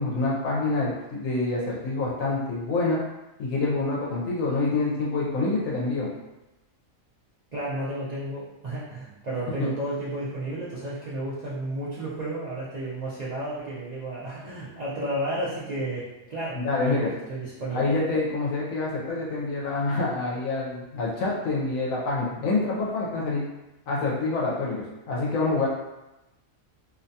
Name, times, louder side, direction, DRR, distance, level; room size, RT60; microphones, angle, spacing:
voice 1, 0.0-3.0 3.4-6.1 9.6-9.7 16.5-17.1 17.7-23.5 23.9-25.7, left 3 dB, 75° left, -4 dB, 1.0 m, -26 dB
voice 2, 7.5-17.9, right 1 dB, 80° right, -9 dB, 0.3 m, -32 dB
2.6 x 2.2 x 2.6 m, 0.99 s
omnidirectional pair, 1.4 m